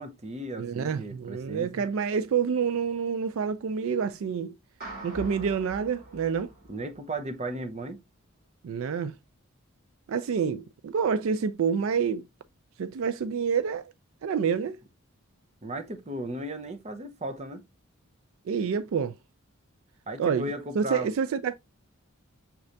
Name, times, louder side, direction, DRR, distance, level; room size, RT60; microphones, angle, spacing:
voice 1, 0.0-1.9 6.7-8.0 15.6-17.6 20.1-21.1, right 1 dB, 30° right, 0.7 m, -36 dB
voice 2, 0.6-4.5 5.0-6.5 8.6-9.1 10.1-12.2 12.8-13.9 14.2-14.8 18.5-19.1 20.2-21.5, right 6 dB, 65° right, 0.3 m, -28 dB
sound 1, 4.8-7.3, right 1 dB, 45° right, 2.9 m, -43 dB
6.0 x 3.2 x 2.6 m
head